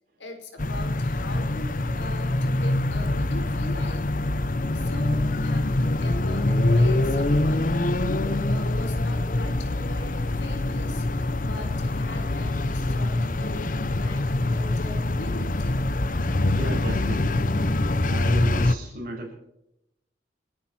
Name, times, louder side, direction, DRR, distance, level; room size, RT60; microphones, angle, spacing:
voice 1, 0.2-4.1 4.7-15.8, left 2 dB, 85° left, 5 dB, 4.2 m, -41 dB
sound 1, 0.6-18.8, left 2 dB, 45° left, 0.8 m, -24 dB
voice 2, 16.5-19.3, equal, 50° right, -1 dB, 7.1 m, -36 dB
29.5 x 10.5 x 4.3 m, 0.81 s
head